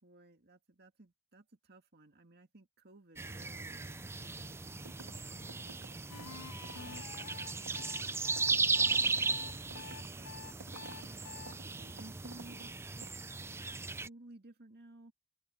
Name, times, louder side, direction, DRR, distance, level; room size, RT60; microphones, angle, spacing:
voice 1, 0.0-5.5 6.8-8.1 8.5-10.5 11.3-13.2 13.9-15.1, right 2 dB, 45° right, 2.0 m, -57 dB
sound 1, 3.2-14.1, right 4 dB, 10° right, 0.4 m, -36 dB
sound 2, 4.8-5.2 5.5-12.7 13.0-13.1, right 3 dB, 85° right, 2.1 m, -53 dB
sound 3, 6.1-11.5, left 6 dB, 85° left, 1.5 m, -49 dB
open air
head